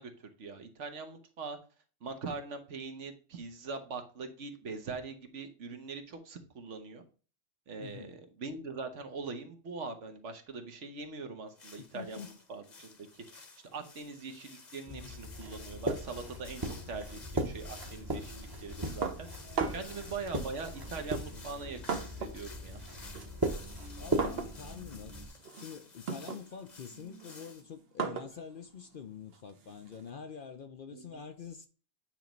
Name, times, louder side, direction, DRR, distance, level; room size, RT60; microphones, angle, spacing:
voice 1, 0.0-1.6 2.0-7.0 7.7-22.8 30.9-31.2, right 4 dB, 70° right, 1.4 m, -42 dB
voice 2, 7.8-8.2 11.8-12.3 14.9-15.1 19.6-20.0 24.0-31.7, left 6 dB, 55° left, 0.6 m, -46 dB
sound 1, 11.5-27.6, left 4 dB, 40° left, 1.0 m, -53 dB
sound 2, 14.9-25.3, right 1 dB, 20° right, 0.9 m, -38 dB
sound 3, 19.0-20.0 20.9-22.5 22.8-30.1, right 5 dB, 55° right, 1.0 m, -39 dB
9.0 x 3.0 x 5.1 m
omnidirectional pair, 1.3 m